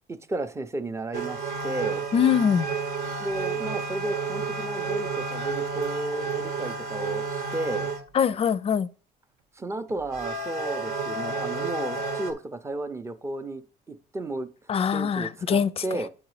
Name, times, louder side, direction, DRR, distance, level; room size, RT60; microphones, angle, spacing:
voice 1, 0.1-2.1 3.2-7.9 9.6-14.5 14.9-16.1, right 2 dB, 15° right, 0.6 m, -33 dB
sound 1, 1.1-8.0 9.9-12.3, right 4 dB, 70° right, 1.2 m, -31 dB
voice 2, 2.1-2.7 8.1-8.9 14.7-15.8, left 7 dB, 35° left, 0.5 m, -23 dB
8.1 x 3.9 x 4.9 m
cardioid pair, 110°, 17 cm